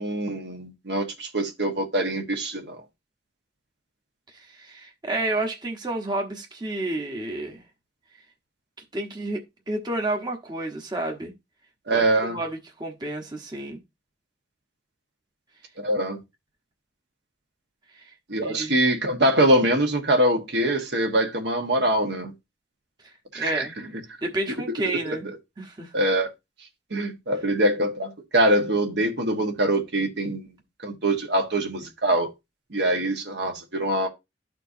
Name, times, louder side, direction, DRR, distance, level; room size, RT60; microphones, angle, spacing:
voice 1, 0.0-2.8 11.9-12.4 15.8-16.2 18.3-22.3 23.3-23.7 24.8-25.2 25.9-26.3 26.9-30.5 30.8-32.3 32.7-34.1, right 1 dB, 65° right, 1.4 m, -23 dB
voice 2, 4.3-7.6 8.9-11.3 11.9-13.8 17.9-18.1 18.4-18.8 23.3-23.7 24.2-25.3 25.6-25.9, right 2 dB, 25° right, 1.0 m, -30 dB
12.5 x 4.5 x 2.7 m
head